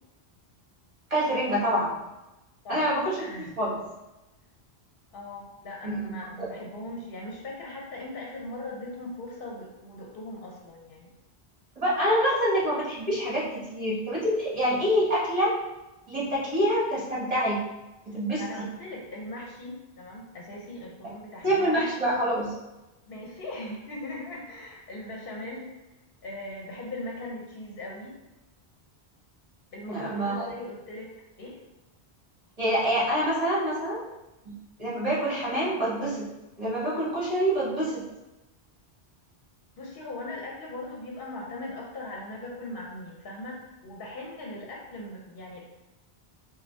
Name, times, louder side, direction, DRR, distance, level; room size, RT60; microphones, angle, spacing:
voice 1, 1.1-2.0 2.7-3.1 3.4-3.8 5.8-6.5 11.8-15.5 16.1-17.6 18.1-18.4 21.4-22.5 29.9-30.5 32.6-34.0 34.4-34.5 34.8-36.3 36.6-38.0, equal, 35° right, -7 dB, 1.4 m, -26 dB
voice 2, 2.6-3.6 5.1-11.1 18.4-21.9 23.1-25.7 26.2-28.2 29.7-31.6 39.8-45.6, left 1 dB, 65° left, -1 dB, 0.8 m, -39 dB
5.0 x 2.2 x 3.4 m, 1.0 s
omnidirectional pair, 1.1 m